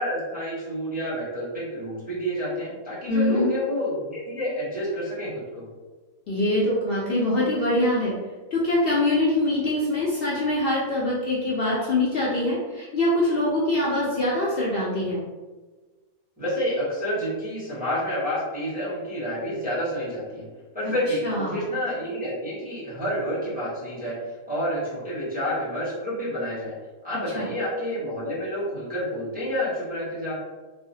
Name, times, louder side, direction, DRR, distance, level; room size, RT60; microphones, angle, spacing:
voice 1, 0.0-5.6 16.4-20.5 20.7-24.2 24.5-26.7 27.0-30.3, equal, 10° right, -9 dB, 0.7 m, -29 dB
voice 2, 3.1-3.5 6.3-8.2 8.5-15.2 21.2-21.7 27.4-27.5, left 1 dB, 90° left, -6 dB, 0.5 m, -24 dB
3.1 x 2.0 x 2.7 m, 1.3 s
omnidirectional pair, 1.6 m